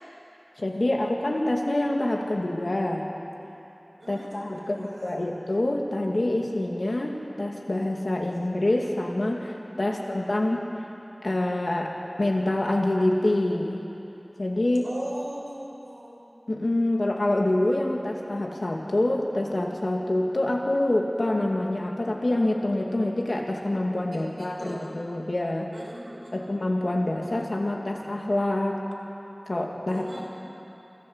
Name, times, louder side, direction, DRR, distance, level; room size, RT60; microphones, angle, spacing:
voice 1, 0.6-3.1 4.1-10.6 11.2-11.9 12.2-13.8 14.4-14.8 16.5-25.7 26.3-28.8 29.5-30.2, left 1 dB, 85° left, 0 dB, 2.4 m, -26 dB
voice 2, 4.0-5.1 9.9-10.0 10.4-10.5 14.8-16.2 24.3-24.9 25.7-26.5 29.9-30.2, right 1 dB, 90° right, -5 dB, 5.9 m, -40 dB
24.5 x 15.0 x 8.1 m, 3.0 s
wide cardioid pair, 45°, 0 cm